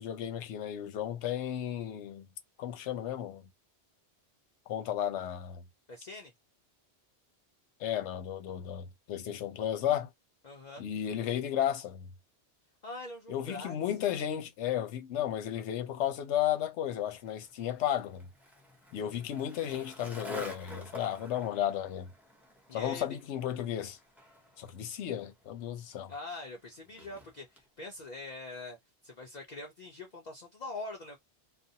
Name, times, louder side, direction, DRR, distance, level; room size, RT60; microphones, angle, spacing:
voice 1, 0.0-2.3 2.6-3.4 4.7-5.6 7.8-10.1 10.8-12.1 13.3-18.3 18.9-22.1 22.7-24.0 24.6-26.1, left 10 dB, 80° left, 0.9 m, -33 dB
voice 2, 5.9-6.3 10.4-10.8 12.8-13.7 22.7-23.2 26.1-28.8 29.0-31.2, left 2 dB, 45° left, 0.6 m, -43 dB
Skateboard, 17.1-27.7, equal, ahead, 0.5 m, -50 dB
2.6 x 2.0 x 2.6 m
omnidirectional pair, 1.2 m